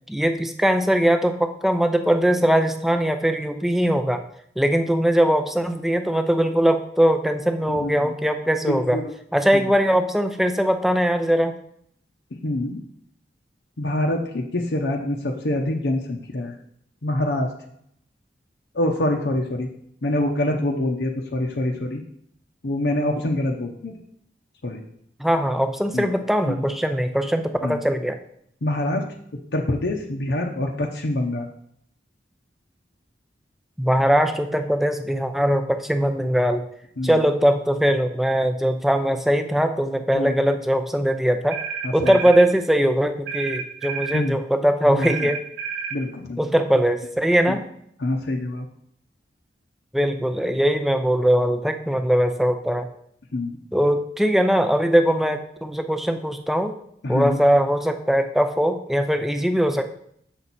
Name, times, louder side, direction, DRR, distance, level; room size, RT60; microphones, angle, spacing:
voice 1, 0.1-4.2 4.6-9.0 9.3-11.5 25.2-28.2 33.8-36.6 37.0-41.6 41.9-45.4 46.4-47.6 49.9-52.9 53.7-56.7 57.1-59.9, equal, ahead, 7 dB, 0.5 m, -21 dB
voice 2, 8.6-9.1 12.4-12.8 13.8-16.5 17.0-17.5 18.7-19.7 20.0-22.0 22.6-23.9 24.6-24.8 25.9-26.1 26.5-26.7 27.6-27.8 28.6-29.1 29.5-31.5 37.0-37.2 40.1-40.3 41.8-42.1 44.1-44.4 44.9-45.1 45.9-46.4 47.5-47.6 48.0-48.7 53.3-53.6 57.0-57.4, left 1 dB, 70° left, 1 dB, 0.8 m, -25 dB
sound 1, 41.5-42.5 43.3-44.3 45.0-46.0, right 6 dB, 65° right, 0.7 m, -30 dB
7.7 x 6.0 x 4.1 m, 0.70 s
head